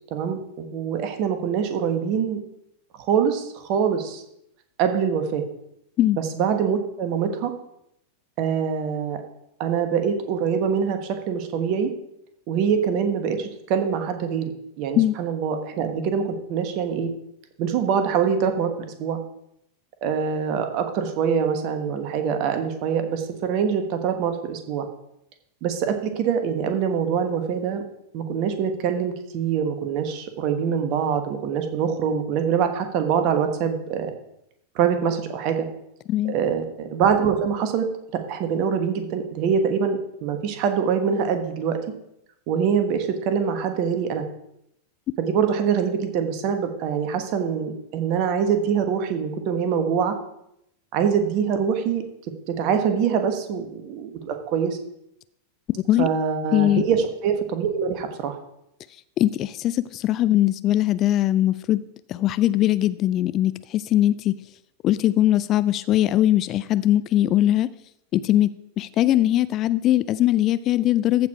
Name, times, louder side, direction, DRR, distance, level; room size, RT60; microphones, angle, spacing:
voice 1, 0.1-2.4 3.1-4.2 4.8-5.4 6.3-7.5 8.4-9.2 9.6-11.0 11.3-11.9 12.5-14.4 14.8-17.1 17.6-18.7 19.0-19.2 20.0-24.9 25.6-27.8 28.1-34.1 34.7-35.7 36.3-37.9 38.3-41.8 42.5-44.2 45.2-50.1 50.9-52.0 52.6-54.8 56.0-58.4, right 7 dB, 40° right, 7 dB, 1.3 m, -24 dB
voice 2, 55.7-56.1 56.5-56.8 59.2-61.8 62.1-64.3 64.8-67.7 68.1-68.5 68.8-71.3, left 13 dB, 35° left, 16 dB, 0.3 m, -20 dB
14.5 x 4.8 x 4.7 m, 0.79 s
figure-of-eight pair, 90°, 0 cm